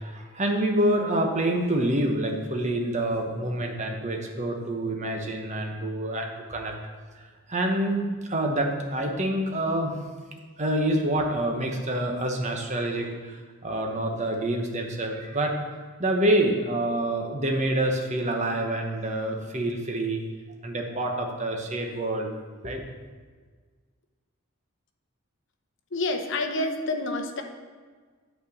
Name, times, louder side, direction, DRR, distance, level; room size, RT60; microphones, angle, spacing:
voice 1, 0.0-6.7 7.5-9.9 10.6-15.5 16.0-20.2 20.6-22.3 22.6-22.8, right 1 dB, 30° right, 2 dB, 0.9 m, -27 dB
voice 2, 25.9-27.4, left 2 dB, 55° left, 5 dB, 0.8 m, -28 dB
8.6 x 4.4 x 6.6 m, 1.6 s
head